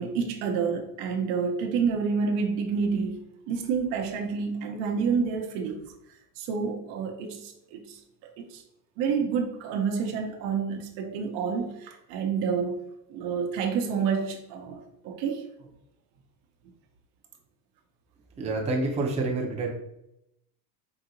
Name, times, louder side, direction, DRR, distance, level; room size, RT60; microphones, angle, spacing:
voice 1, 0.0-5.8 6.4-8.6 9.0-12.8 13.1-15.4, right 5 dB, 70° right, 4 dB, 0.9 m, -29 dB
voice 2, 18.4-19.7, right 2 dB, 15° right, -1 dB, 0.6 m, -27 dB
4.8 x 2.8 x 2.7 m, 0.82 s
cardioid pair, 145°, 46 cm